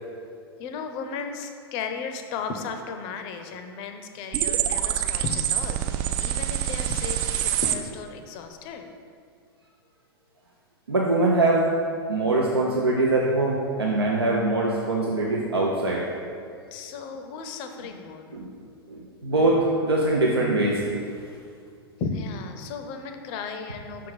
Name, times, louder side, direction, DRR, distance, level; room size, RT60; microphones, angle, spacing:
voice 1, 0.6-8.9 16.7-18.3 22.0-24.1, left 5 dB, 40° left, 6 dB, 0.5 m, -35 dB
sound 1, 4.3-7.8, right 10 dB, 35° right, 0.3 m, -26 dB
voice 2, 10.9-11.7 12.1-16.0 18.3-18.5 18.9-21.0, right 2 dB, 80° right, -3 dB, 0.6 m, -23 dB
5.9 x 3.5 x 4.7 m, 2.3 s
figure-of-eight pair, 95°, 13 cm